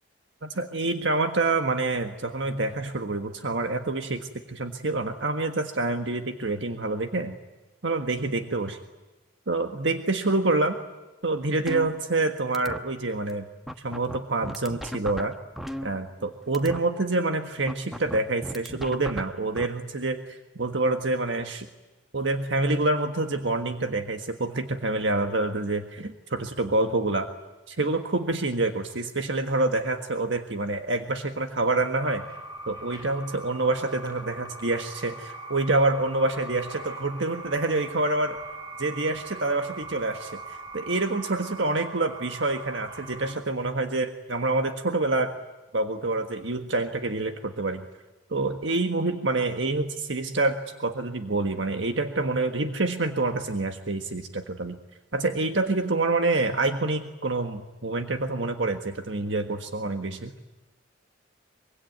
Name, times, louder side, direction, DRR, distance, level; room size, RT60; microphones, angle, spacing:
voice 1, 0.4-7.4 7.8-8.8 9.5-10.8 11.2-13.5 13.8-15.3 15.8-21.7 22.1-27.3 27.7-32.2 32.7-38.4 38.8-45.3 45.7-47.8 48.3-54.8 55.1-60.3, right 2 dB, 70° right, 6 dB, 1.6 m, -27 dB
sound 1, 11.7-12.3 12.5-12.8 13.3-13.4 13.7-16.3 16.5-16.8 17.7-19.7, equal, ahead, 1.1 m, -36 dB
sound 2, 32.0-43.3, right 2 dB, 20° right, 6.7 m, -41 dB
24.5 x 24.0 x 9.4 m, 1.1 s
head